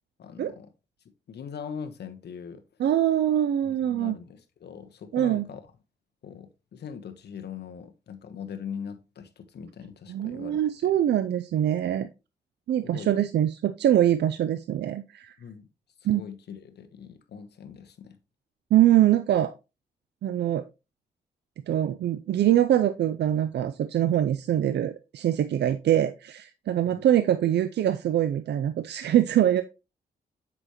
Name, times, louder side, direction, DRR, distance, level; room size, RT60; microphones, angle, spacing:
voice 1, 0.2-0.7 1.3-2.6 3.6-5.6 6.2-10.9 12.8-13.2 15.4-15.7 16.1-18.2 26.8-27.0, left 7 dB, 70° left, 1.2 m, -41 dB
voice 2, 2.8-4.2 5.1-5.5 10.1-12.1 12.7-15.3 16.0-16.2 18.7-19.5 20.2-20.6 21.7-29.6, right 11 dB, 75° right, 0.5 m, -23 dB
8.1 x 6.1 x 3.0 m
supercardioid pair, 55°, 18 cm